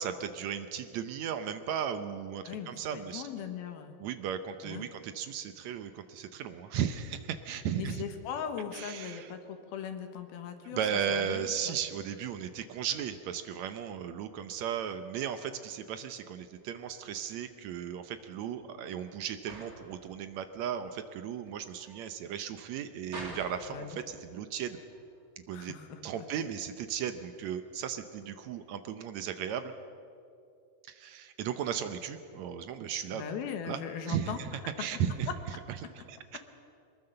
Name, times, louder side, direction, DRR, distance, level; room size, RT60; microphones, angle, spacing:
voice 1, 0.0-3.2 4.0-8.0 8.7-9.3 10.7-24.8 25.5-25.7 26.0-29.7 30.9-33.3 33.6-33.8 34.1-34.5 34.8-35.3 36.1-36.4, right 8 dB, 75° right, 9 dB, 1.6 m, -36 dB
voice 2, 2.4-4.0 4.6-4.9 7.7-11.8 23.7-24.0 25.5-26.5 33.1-34.4, left 7 dB, 85° left, 7 dB, 3.4 m, -40 dB
sound 1, 16.6-28.4, right 1 dB, 25° right, 3.2 m, -51 dB
23.0 x 20.5 x 6.7 m, 2.5 s
omnidirectional pair, 4.2 m